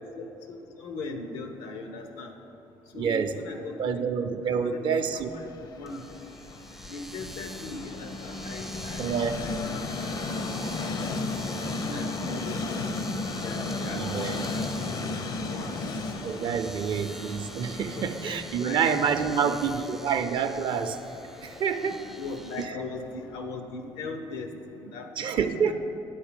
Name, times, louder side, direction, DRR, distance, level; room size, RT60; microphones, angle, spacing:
voice 1, 0.2-2.3 2.9-4.0 4.4-4.8 5.1-5.5 5.8-6.0 6.9-9.1 9.4-10.0 10.4-11.0 11.7-12.9 13.4-14.8 15.4-15.8 16.5-16.9 17.7-18.1 18.6-18.8 19.2-19.6 21.8-25.7, left 3 dB, 85° left, 5 dB, 0.9 m, -39 dB
voice 2, 2.9-3.4 3.8-5.3 9.0-9.4 13.9-14.4 16.2-21.0 21.4-22.0 22.6-22.8 25.2-25.7, right 6 dB, 60° right, 8 dB, 0.5 m, -27 dB
Train, 5.3-23.4, left 3 dB, 50° left, 0.6 m, -35 dB
Domestic sounds home sounds, 5.9-22.7, right 1 dB, 5° right, 0.4 m, -45 dB
8.8 x 4.4 x 7.3 m, 2.8 s
supercardioid pair, 80°, 9 cm